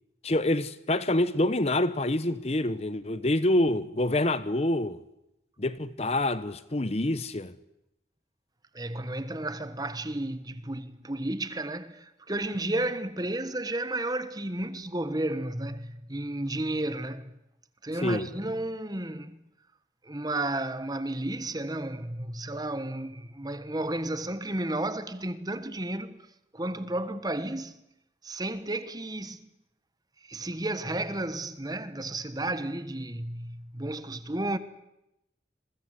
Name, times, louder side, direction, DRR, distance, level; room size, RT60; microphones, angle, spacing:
voice 1, 0.2-5.0 5.6-7.5 18.0-18.3, left 1 dB, 35° left, 0.9 m, -26 dB
voice 2, 8.7-17.3 17.8-19.4 20.0-26.3 26.5-27.8 28.2-29.5 30.2-34.6, right 1 dB, 20° right, 1.3 m, -32 dB
27.5 x 22.5 x 8.2 m
head